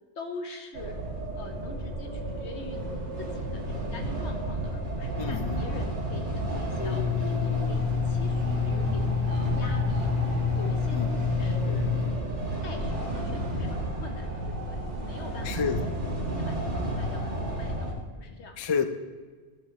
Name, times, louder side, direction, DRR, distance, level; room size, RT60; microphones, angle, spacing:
voice 1, 0.2-0.9 1.3-15.9 16.2-18.7, left 3 dB, 70° left, 4 dB, 1.3 m, -44 dB
sound 1, 0.7-17.9, right 1 dB, 75° right, 2.2 m, -32 dB
voice 2, 5.2-5.6 10.9-11.1 15.4-15.8 18.6-18.9, left 6 dB, 45° left, 7 dB, 0.3 m, -28 dB
Domestic sounds home sounds, 6.8-12.1, left 7 dB, 30° left, 0.8 m, -28 dB
13.0 x 6.6 x 3.1 m, 1.5 s
omnidirectional pair, 1.2 m